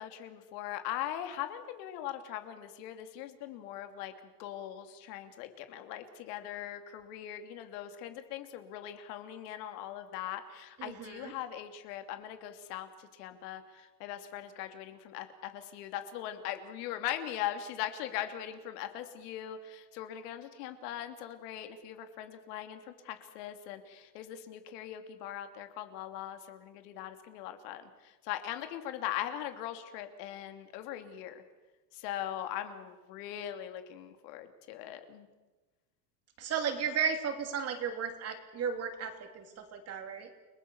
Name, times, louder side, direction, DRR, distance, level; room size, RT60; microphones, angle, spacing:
voice 1, 0.0-4.1 4.4-12.9 13.2-27.8 28.2-31.4 31.9-35.3, left 11 dB, 70° left, 7 dB, 2.9 m, -40 dB
voice 2, 10.8-11.3 36.4-40.3, right 6 dB, 30° right, 6 dB, 3.1 m, -34 dB
30.0 x 20.0 x 7.1 m, 1.2 s
cardioid pair, 165°, 49 cm